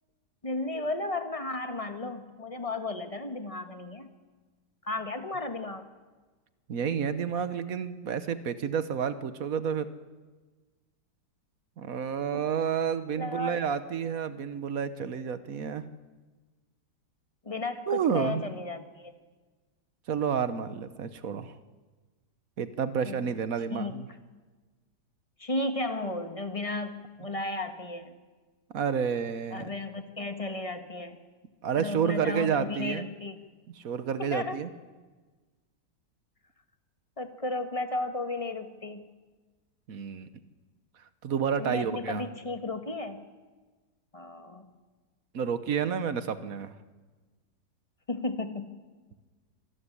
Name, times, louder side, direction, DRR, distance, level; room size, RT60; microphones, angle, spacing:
voice 1, 0.4-4.1 4.8-5.9 12.3-12.5 13.2-13.7 17.4-19.1 23.0-23.2 23.7-24.0 25.4-28.1 29.5-31.2 31.8-33.3 34.2-34.6 37.2-39.0 41.6-43.2 44.1-44.7 48.1-48.8, left 2 dB, 20° left, 7 dB, 1.4 m, -34 dB
voice 2, 6.7-9.9 11.8-15.8 17.9-18.5 20.1-21.5 22.6-24.1 28.7-29.7 31.6-33.1 33.8-34.7 39.9-40.3 41.2-42.2 45.3-46.7, right 7 dB, 55° right, 12 dB, 1.4 m, -30 dB
26.0 x 13.5 x 9.9 m, 1.3 s
omnidirectional pair, 1.9 m